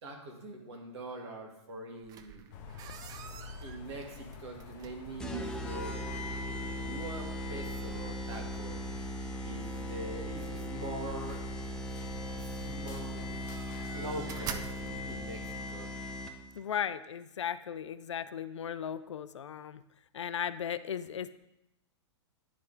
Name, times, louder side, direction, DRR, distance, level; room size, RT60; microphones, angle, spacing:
voice 1, 0.0-2.5 3.6-6.0 6.4-8.8 9.4-11.5 11.8-13.4 13.9-15.9, right 1 dB, 65° right, 1 dB, 1.7 m, -44 dB
sound 1, 2.0-15.6, right 8 dB, 25° right, 0.4 m, -50 dB
sound 2, 2.5-15.3, left 4 dB, 40° left, 0.8 m, -50 dB
sound 3, 5.2-16.6, equal, 5° left, 0.7 m, -38 dB
voice 2, 16.6-19.8 20.1-21.5, left 8 dB, 75° left, 14 dB, 0.4 m, -36 dB
10.5 x 3.7 x 3.9 m, 0.88 s
figure-of-eight pair, 105°, 15 cm